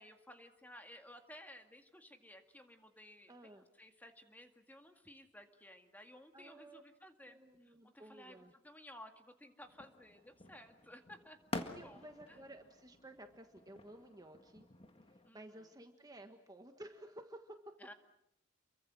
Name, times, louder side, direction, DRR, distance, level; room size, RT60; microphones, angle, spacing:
voice 1, 0.0-11.4 11.7-12.4 15.2-15.4 17.8-17.9, left 1 dB, 10° left, 5 dB, 2.0 m, -56 dB
voice 2, 3.3-3.7 6.3-6.8 7.2-8.5 11.7-14.7 15.1-17.6, right 1 dB, 20° right, 6 dB, 1.5 m, -54 dB
sound 1, 9.6-15.3, left 2 dB, 30° left, 1.7 m, -49 dB
29.0 x 23.5 x 6.3 m, 0.81 s
head